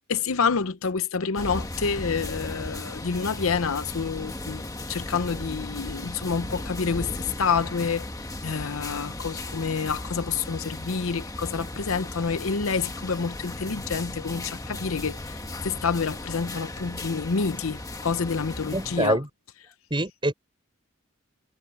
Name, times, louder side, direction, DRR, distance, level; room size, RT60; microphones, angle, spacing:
voice 1, 0.1-8.0 8.4-19.2, left 5 dB, 75° left, 0.7 m, -28 dB
sound 1, 1.4-19.0, left 1 dB, 15° left, 1.4 m, -36 dB
voice 2, 18.7-19.3 19.9-20.3, right 1 dB, 25° right, 4.7 m, -25 dB
head